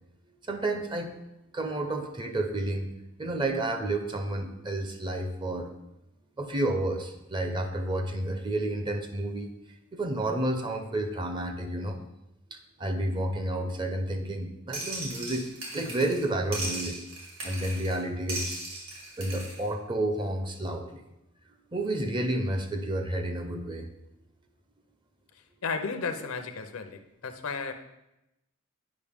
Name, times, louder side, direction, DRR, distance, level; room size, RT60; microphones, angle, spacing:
voice 1, 0.5-1.1 1.5-2.9 3.2-5.7 6.4-9.5 9.9-12.0 12.8-15.5 15.7-17.0 17.4-18.6 19.2-21.0 21.7-23.9, right 1 dB, 25° right, 6 dB, 0.6 m, -30 dB
sound 1, 14.7-16.3 16.5-18.0 18.3-19.6, right 2 dB, 65° right, 2.3 m, -37 dB
voice 2, 25.6-27.7, left 4 dB, 85° left, 7 dB, 0.7 m, -33 dB
8.4 x 5.3 x 3.5 m, 0.90 s
head